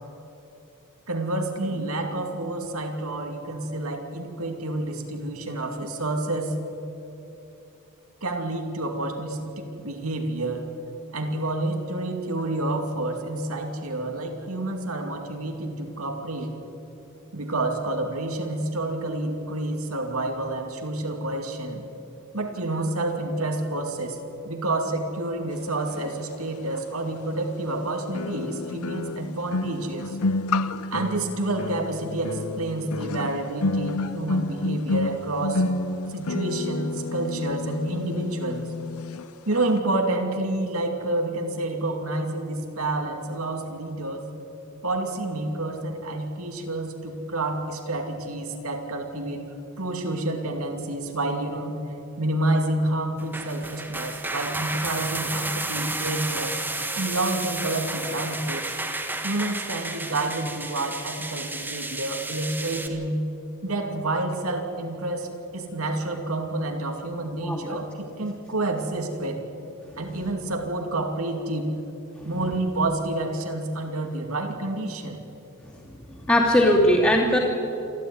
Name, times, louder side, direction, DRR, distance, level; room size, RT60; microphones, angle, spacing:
voice 1, 1.1-6.5 8.2-10.6 11.1-16.5 17.3-21.9 22.3-24.2 24.4-30.2 30.9-35.6 36.1-38.7 39.5-44.2 44.8-49.4 49.8-51.8 52.2-56.5 56.9-58.7 59.2-63.2 63.6-69.4 70.0-71.8 72.2-75.2, right 2 dB, 80° right, 3 dB, 2.7 m, -29 dB
sound 1, 26.8-26.9 28.1-39.2 39.5-39.8, left 2 dB, 85° left, 0.7 m, -29 dB
sound 2, 53.2-62.9, right 2 dB, 10° right, 1.6 m, -32 dB
voice 2, 67.4-67.8 75.7-75.8 76.2-77.4, left 1 dB, 10° left, -6 dB, 2.8 m, -20 dB
27.5 x 12.5 x 9.6 m, 3.0 s
head